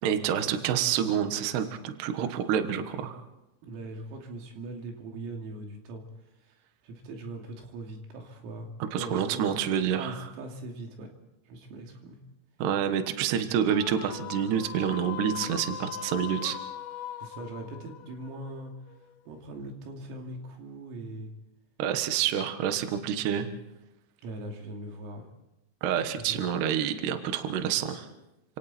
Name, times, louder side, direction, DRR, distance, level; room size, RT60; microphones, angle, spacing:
voice 1, 0.0-3.2 8.9-10.2 12.6-16.6 21.8-23.5 25.8-28.1, right 9 dB, 65° right, 8 dB, 3.0 m, -28 dB
voice 2, 3.6-6.0 6.4-6.6 6.8-8.7 9.0-9.5 9.9-11.1 11.5-12.2 17.2-18.7 19.3-21.3 24.2-25.2 26.2-26.4, right 2 dB, 85° right, 2 dB, 5.4 m, -40 dB
sound 1, 13.7-19.1, left 10 dB, 70° left, 2.4 m, -40 dB
30.0 x 27.0 x 4.4 m, 0.91 s
omnidirectional pair, 5.9 m